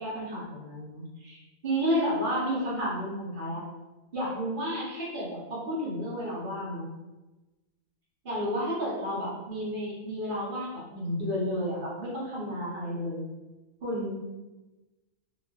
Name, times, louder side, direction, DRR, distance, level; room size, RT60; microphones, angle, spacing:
voice 1, 0.0-3.6 4.1-6.8 8.2-13.2 13.8-14.2, equal, 40° right, -8 dB, 1.0 m, -31 dB
3.2 x 2.4 x 2.3 m, 1.1 s
omnidirectional pair, 1.6 m